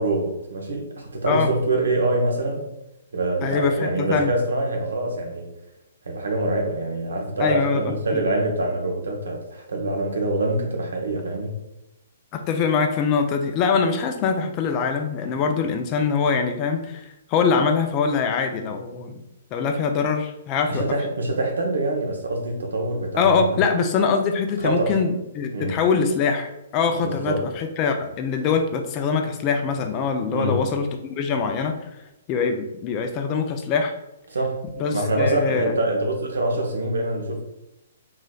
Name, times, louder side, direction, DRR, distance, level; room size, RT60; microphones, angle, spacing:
voice 1, 0.0-2.7 3.1-5.5 6.1-11.6 20.7-23.6 24.6-25.0 25.5-25.8 27.0-27.5 30.3-30.7 34.3-34.6 34.9-37.4, right 2 dB, 70° right, 2 dB, 0.9 m, -25 dB
voice 2, 3.4-4.3 7.4-8.2 12.3-19.2 19.5-20.8 23.2-31.8 32.3-33.9 34.8-35.7, left 5 dB, 30° left, 5 dB, 0.5 m, -23 dB
3.8 x 3.0 x 2.3 m, 0.91 s
figure-of-eight pair, 120°, 0 cm